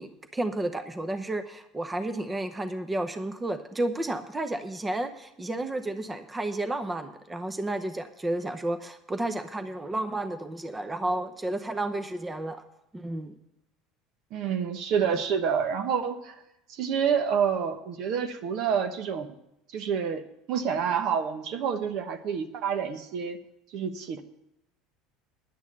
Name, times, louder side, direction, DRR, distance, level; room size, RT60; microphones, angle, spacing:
voice 1, 0.0-12.6 12.9-13.3, right 1 dB, 15° right, 8 dB, 0.8 m, -32 dB
voice 2, 14.3-16.3 16.7-19.3 19.7-23.4 23.7-24.2, right 7 dB, 60° right, 8 dB, 1.1 m, -28 dB
10.5 x 6.3 x 8.7 m, 0.85 s
supercardioid pair, 105°, 0 cm